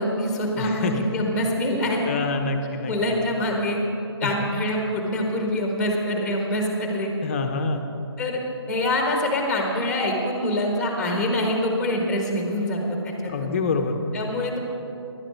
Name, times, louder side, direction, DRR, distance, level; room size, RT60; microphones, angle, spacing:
voice 1, 0.0-2.1 2.8-3.8 4.2-7.1 8.2-8.4 8.7-13.5 14.1-14.6, left 1 dB, 5° left, 1 dB, 1.5 m, -25 dB
voice 2, 0.6-1.1 2.0-3.2 4.2-4.3 7.2-7.9 13.2-14.0, left 4 dB, 30° left, 5 dB, 0.9 m, -27 dB
15.5 x 11.5 x 4.5 m, 2.9 s
hypercardioid pair, 165°, 14 cm